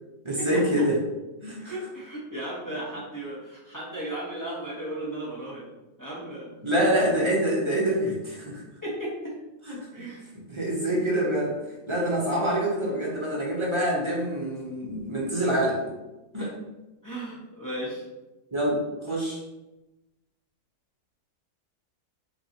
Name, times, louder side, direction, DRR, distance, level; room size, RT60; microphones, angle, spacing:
voice 1, 0.2-1.0 1.4-1.7 6.6-8.6 9.7-9.8 10.5-11.5 11.9-15.8 16.3-16.5 18.5-19.4, right 1 dB, 20° right, -4 dB, 0.9 m, -26 dB
voice 2, 1.6-5.7 6.0-6.7 8.8-9.3 9.9-10.2 16.4-16.5 17.0-18.0, right 1 dB, 15° left, -7 dB, 1.0 m, -35 dB
5.8 x 3.1 x 2.9 m, 1.0 s
omnidirectional pair, 1.7 m